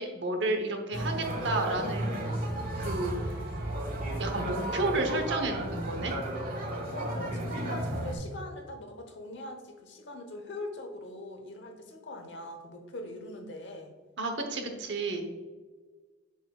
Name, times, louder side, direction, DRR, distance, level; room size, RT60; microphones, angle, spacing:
voice 1, 0.0-2.2 2.8-3.4 4.2-6.2 14.2-15.2, right 2 dB, 65° right, 5 dB, 0.9 m, -31 dB
sound 1, 0.9-8.2, right 1 dB, 45° right, 1.3 m, -33 dB
voice 2, 6.9-13.9, left 1 dB, 65° left, 5 dB, 1.0 m, -42 dB
7.0 x 6.5 x 2.3 m, 1.4 s
head